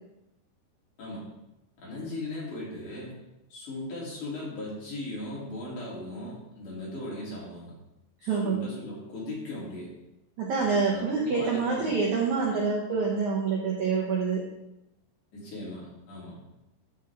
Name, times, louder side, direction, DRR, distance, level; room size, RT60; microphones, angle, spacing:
voice 1, 1.8-3.1 3.5-7.7 8.2-9.9 10.9-12.0 15.3-16.3, left 1 dB, 50° left, -6 dB, 4.3 m, -38 dB
voice 2, 8.2-8.6 10.4-14.4, right 5 dB, 65° right, -3 dB, 1.9 m, -26 dB
13.5 x 6.3 x 3.6 m, 0.90 s
omnidirectional pair, 5.0 m